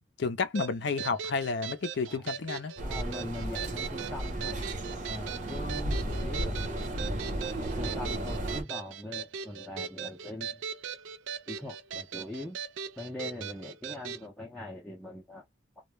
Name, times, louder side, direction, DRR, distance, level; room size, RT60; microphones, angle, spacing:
voice 1, 0.2-2.7 5.7-5.8, left 4 dB, 60° left, 0.5 m, -31 dB
sound 1, 0.5-14.2, right 7 dB, 75° right, 0.4 m, -39 dB
voice 2, 2.8-4.6 5.1-7.0 7.6-10.6 11.5-12.6 13.0-15.4, left 1 dB, 5° left, 0.6 m, -42 dB
sound 2, 2.8-8.6, right 1 dB, 40° right, 0.8 m, -34 dB
2.3 x 2.1 x 3.2 m
head